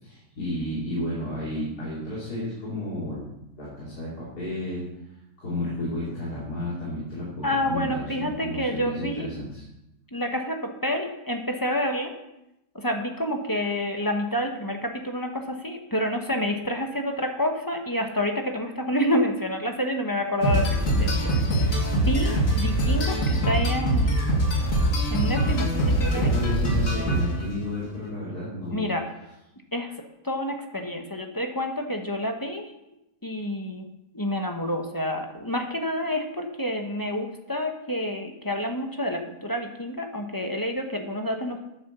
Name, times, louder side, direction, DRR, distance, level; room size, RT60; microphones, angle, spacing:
voice 1, 0.0-3.3 3.6-4.9 5.4-9.6 26.1-28.9, left 1 dB, 75° left, -7 dB, 3.8 m, -32 dB
voice 2, 7.4-9.3 10.1-12.1 12.7-21.6 21.9-24.1 25.1-26.3 28.7-29.1 29.7-29.9 30.2-32.6 33.2-33.9 34.1-41.6, equal, 15° left, 3 dB, 1.0 m, -28 dB
sound 1, 20.4-27.6, right 1 dB, 55° left, 2.5 m, -23 dB
10.0 x 7.7 x 6.8 m, 0.90 s
omnidirectional pair, 1.7 m